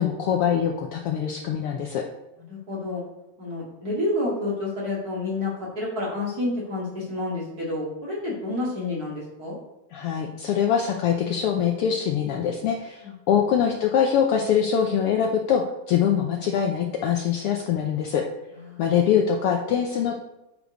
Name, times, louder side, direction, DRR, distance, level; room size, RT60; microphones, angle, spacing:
voice 1, 0.0-2.0 9.9-18.2 18.8-20.2, left 8 dB, 85° left, 2 dB, 1.2 m, -23 dB
voice 2, 2.5-3.0 3.4-9.6 13.0-13.4 18.5-18.9, left 2 dB, 35° right, -5 dB, 2.3 m, -29 dB
8.1 x 5.1 x 5.0 m, 0.95 s
omnidirectional pair, 3.3 m